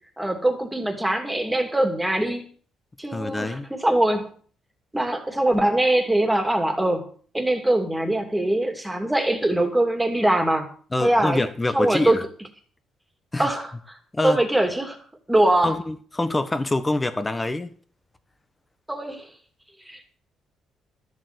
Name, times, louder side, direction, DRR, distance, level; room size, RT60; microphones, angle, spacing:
voice 1, 0.2-2.5 3.0-4.4 4.9-7.0 7.3-10.6 11.0-11.5 11.7-12.2 13.4-14.0 14.2-15.0 15.3-15.7 18.9-19.3 19.9-20.2, right 1 dB, 5° right, 2.7 m, -22 dB
voice 2, 3.1-3.7 10.9-12.2 13.3-13.5 14.1-14.4 15.6-17.7, left 2 dB, 15° left, 1.2 m, -25 dB
13.5 x 7.4 x 8.0 m
cardioid pair, 140°, 0 cm